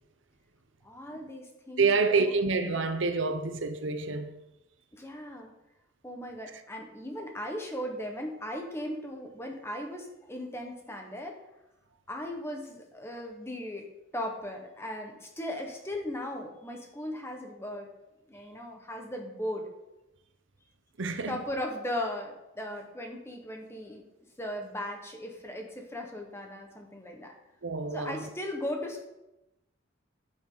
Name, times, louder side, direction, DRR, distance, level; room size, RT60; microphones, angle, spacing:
voice 1, 0.8-2.4 4.9-5.5 6.0-11.4 12.1-13.8 14.1-17.9 18.3-19.7 21.3-24.0 24.4-27.3 27.9-29.0, left 1 dB, 15° left, 1.4 m, -37 dB
voice 2, 1.8-4.3 21.0-21.4 27.6-28.3, right 4 dB, 70° right, 0.8 m, -27 dB
9.7 x 8.7 x 4.0 m
head